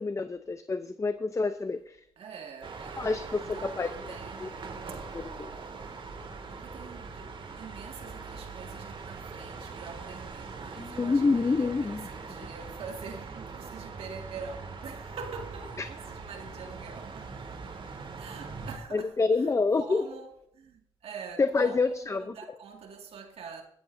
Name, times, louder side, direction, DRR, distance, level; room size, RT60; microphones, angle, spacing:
voice 1, 0.0-2.0 3.0-3.9 4.4-4.5 5.1-5.5 10.8-12.1 15.8-15.9 18.9-20.0 21.4-22.2, left 4 dB, 30° left, 0.7 m, -27 dB
voice 2, 2.2-3.1 3.4-4.6 4.9-5.0 6.5-17.4 18.0-23.6, right 5 dB, 80° right, 2.2 m, -45 dB
sound 1, 2.6-18.8, right 4 dB, 55° right, 2.3 m, -42 dB
18.0 x 14.0 x 2.7 m
cardioid pair, 65°, 10 cm